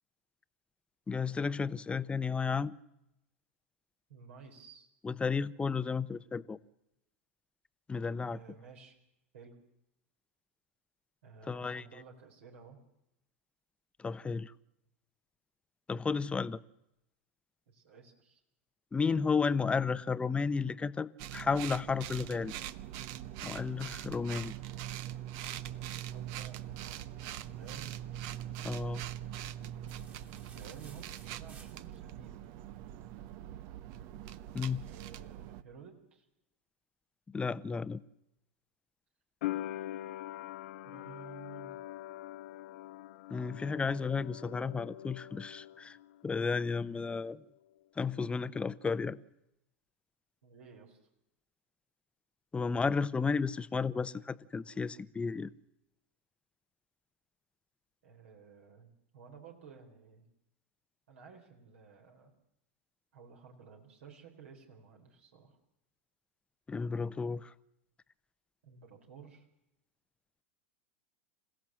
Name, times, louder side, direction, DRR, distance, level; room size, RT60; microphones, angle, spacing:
voice 1, 1.1-2.7 5.0-6.6 7.9-8.4 11.5-11.8 14.0-14.5 15.9-16.6 18.9-22.6 23.4-24.5 28.6-29.0 34.5-34.8 37.3-38.0 43.3-46.0 46.2-47.4 48.0-49.2 52.5-55.5 66.7-67.5, left 5 dB, 15° left, 0.8 m, -33 dB
voice 2, 4.1-4.9 8.3-9.0 9.3-9.6 11.2-12.8 17.7-18.4 26.1-28.0 30.5-32.5 34.8-36.3 40.8-41.7 50.4-51.0 58.0-60.3 61.1-62.3 63.1-65.6 68.6-69.4, right 6 dB, 75° right, 4.1 m, -54 dB
sound 1, 21.2-35.6, right 12 dB, 55° right, 1.0 m, -42 dB
sound 2, 29.9-32.3, right 5 dB, 25° right, 2.3 m, -58 dB
sound 3, 39.4-46.2 46.5-47.4, left 14 dB, 65° left, 0.8 m, -43 dB
27.0 x 16.0 x 7.6 m
hypercardioid pair, 95°, 7 cm